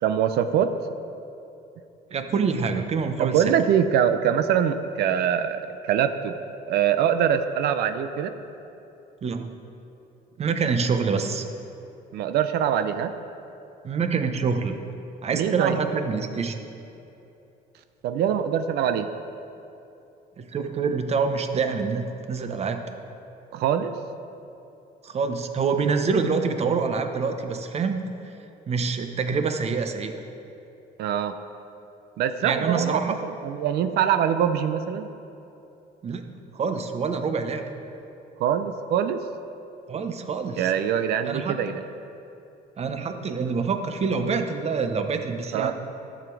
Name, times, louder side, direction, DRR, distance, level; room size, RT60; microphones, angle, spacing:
voice 1, 0.0-0.8 3.2-6.3 6.7-8.3 12.1-13.1 15.3-15.8 18.0-19.1 23.5-23.9 31.0-31.4 32.2-35.1 38.4-39.2 40.6-41.8 45.5-45.7, right 9 dB, 75° right, 9 dB, 0.6 m, -23 dB
voice 2, 2.1-3.6 9.2-9.5 10.4-11.4 13.8-14.8 15.2-16.6 20.4-22.8 25.0-28.0 28.7-30.1 32.4-33.2 36.0-36.2 36.5-37.6 39.9-40.6 41.2-41.6 42.8-45.7, right 5 dB, 40° right, 7 dB, 0.8 m, -26 dB
12.0 x 7.2 x 4.7 m, 2.9 s
cardioid pair, 110°, 17 cm